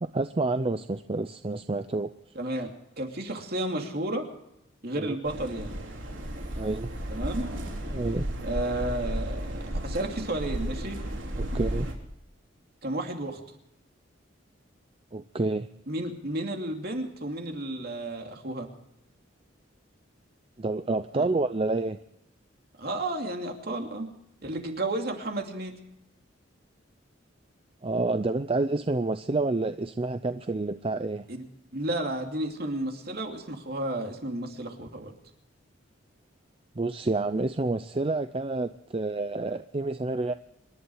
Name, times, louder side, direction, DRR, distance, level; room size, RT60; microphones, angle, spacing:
voice 1, 0.0-2.1 5.0-5.2 6.5-6.9 7.9-8.3 11.4-11.9 15.1-15.7 20.6-22.0 27.8-31.2 36.8-40.3, right 2 dB, 30° right, 10 dB, 0.5 m, -28 dB
voice 2, 2.3-2.7 3.0-4.3 4.8-5.8 7.1-7.5 8.4-11.0 12.8-13.4 15.9-18.7 21.1-21.2 22.8-24.1 24.4-25.8 31.3-31.4 31.7-35.1, right 1 dB, 55° right, 3 dB, 2.7 m, -32 dB
sound 1, 5.2-11.9, right 1 dB, 90° right, 3.3 m, -33 dB
26.5 x 11.5 x 4.8 m, 0.82 s
head